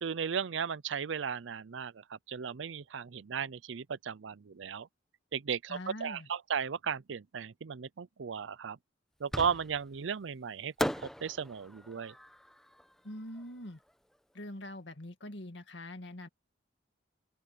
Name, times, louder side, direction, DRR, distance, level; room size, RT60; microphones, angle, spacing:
voice 1, 0.0-4.9 5.3-8.8 9.2-12.1, right 7 dB, 85° right, 0.5 m, -36 dB
voice 2, 5.7-6.3 13.0-13.8 14.3-16.3, left 1 dB, 70° left, 2.1 m, -44 dB
Fireworks, 9.3-10.0 10.8-13.9, equal, ahead, 0.9 m, -38 dB
open air
head